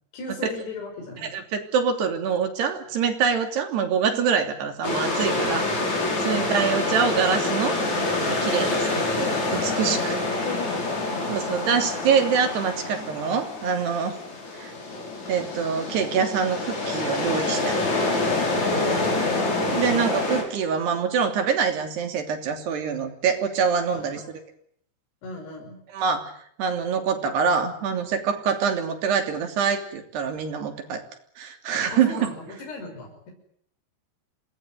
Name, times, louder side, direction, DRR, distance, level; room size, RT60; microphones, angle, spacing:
voice 1, 0.1-1.4 6.3-6.6 10.1-11.6 18.7-19.4 24.0-24.4 25.2-25.8 31.9-33.3, left 2 dB, 70° left, 1 dB, 7.8 m, -38 dB
voice 2, 1.2-5.7 6.2-10.2 11.3-14.2 14.6-14.7 15.3-17.8 18.2-18.3 19.7-24.2 25.9-26.3 26.6-31.0 31.4-32.3, right 6 dB, 70° right, 5 dB, 5.1 m, -25 dB
sound 1, 4.8-20.4, left 2 dB, 40° left, 7.2 m, -26 dB
26.5 x 19.5 x 9.4 m, 0.66 s
omnidirectional pair, 4.9 m